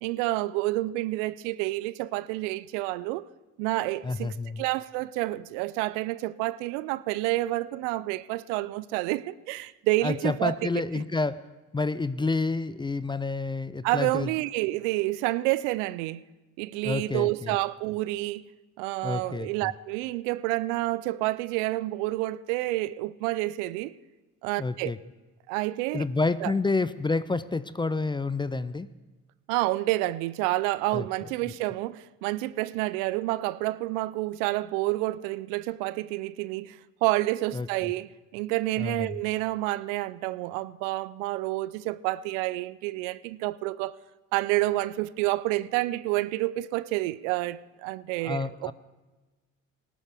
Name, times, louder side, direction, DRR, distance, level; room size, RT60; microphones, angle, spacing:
voice 1, 0.0-3.2 3.6-11.0 13.8-16.2 16.6-18.4 18.8-23.9 24.4-24.9 25.5-26.1 26.4-26.5 29.5-44.0 44.3-48.7, right 18 dB, 80° right, 0.5 m, -29 dB
voice 2, 4.0-4.6 10.0-11.4 11.7-14.3 16.8-17.5 19.0-19.7 24.6-25.0 25.9-28.9 30.9-31.0 37.5-37.7 38.8-39.2 48.2-48.7, left 3 dB, 15° left, 0.4 m, -29 dB
18.5 x 12.5 x 3.5 m
hypercardioid pair, 55°, 37 cm